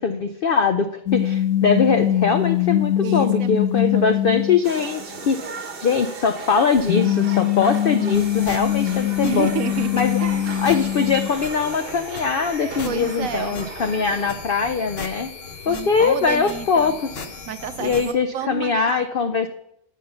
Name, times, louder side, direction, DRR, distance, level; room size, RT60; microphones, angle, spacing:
voice 1, 0.0-5.5 5.8-9.5 9.9-10.2 10.6-15.3 15.7-17.0 17.8-19.5, left 5 dB, 70° left, 8 dB, 0.5 m, -22 dB
sound 1, 1.1-5.0 6.8-11.3, left 12 dB, 85° left, 1.1 m, -22 dB
voice 2, 3.0-3.6 3.9-4.2 9.2-9.9 10.2-10.6 12.8-13.6 15.6-17.0 17.5-19.1, right 8 dB, 70° right, 11 dB, 1.0 m, -30 dB
sound 2, 4.6-14.3, right 4 dB, 45° right, 1.0 m, -37 dB
sound 3, 8.1-18.1, left 4 dB, 50° left, 1.0 m, -38 dB
12.5 x 5.6 x 5.6 m, 0.78 s
omnidirectional pair, 1.6 m